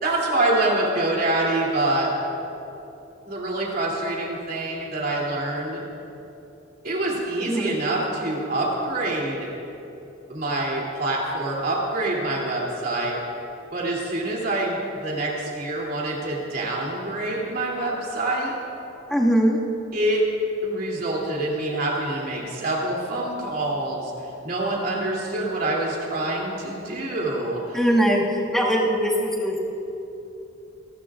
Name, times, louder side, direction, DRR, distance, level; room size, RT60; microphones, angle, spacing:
voice 1, 0.0-2.1 3.2-5.8 6.8-9.5 10.3-13.2 13.7-18.6 19.9-20.2 20.6-24.1 24.4-27.8, right 2 dB, 50° right, -3 dB, 3.0 m, -26 dB
voice 2, 7.4-7.8 19.1-19.6 27.7-29.6, equal, ahead, -4 dB, 1.9 m, -21 dB
29.0 x 12.5 x 2.5 m, 2.9 s
head